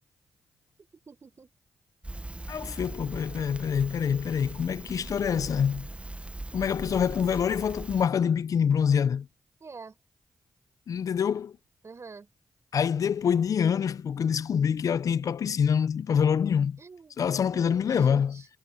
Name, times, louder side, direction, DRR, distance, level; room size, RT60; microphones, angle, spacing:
voice 1, 1.1-1.5 2.6-2.8 9.6-10.0 11.8-12.3 16.8-18.5, right 4 dB, 50° right, 5.7 m, -46 dB
Crackle, 2.0-8.1, right 2 dB, 20° right, 1.0 m, -40 dB
voice 2, 2.5-5.9 6.5-9.3 10.9-11.5 12.7-16.8 17.2-18.4, left 7 dB, 70° left, 0.7 m, -26 dB
supercardioid pair, 45°, 6 cm